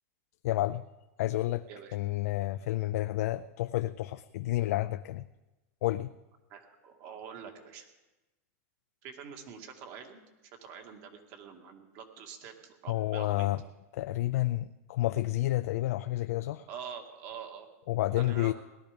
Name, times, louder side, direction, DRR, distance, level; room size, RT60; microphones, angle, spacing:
voice 1, 0.4-0.8 1.2-1.7 1.9-5.2 5.8-6.1 12.9-13.6 13.9-16.7 17.9-18.5, left 16 dB, 70° left, 10 dB, 0.5 m, -30 dB
voice 2, 6.5-7.9 9.0-10.2 10.5-13.5 16.7-17.7 18.2-18.5, right 7 dB, 50° right, 4 dB, 2.1 m, -45 dB
18.0 x 12.0 x 5.2 m, 1.1 s
supercardioid pair, 145°, 8 cm